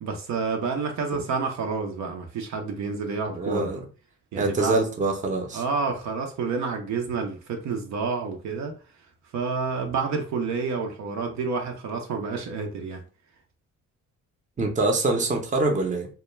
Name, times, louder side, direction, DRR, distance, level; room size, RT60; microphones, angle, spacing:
voice 1, 0.0-3.7 4.3-4.9 5.5-8.7 9.3-13.0, right 4 dB, 65° right, 0.6 m, -29 dB
voice 2, 3.3-3.8 4.4-5.6 14.6-16.1, right 2 dB, 25° right, 0.6 m, -24 dB
2.2 x 2.1 x 3.0 m
cardioid pair, 90°, 30 cm